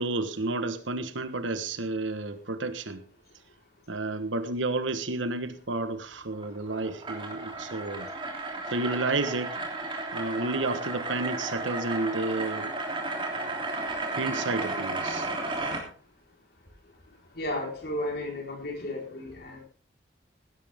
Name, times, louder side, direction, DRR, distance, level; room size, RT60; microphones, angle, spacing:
voice 1, 0.0-3.0 3.9-8.1 8.7-9.6 10.1-12.8 13.3-13.6 14.2-15.3, right 2 dB, 80° right, 10 dB, 1.3 m, -31 dB
sound 1, 6.3-15.8, right 2 dB, 25° right, 3.1 m, -33 dB
voice 2, 17.4-19.6, left 1 dB, 55° left, 1 dB, 4.4 m, -33 dB
16.0 x 12.5 x 3.6 m, 0.38 s
head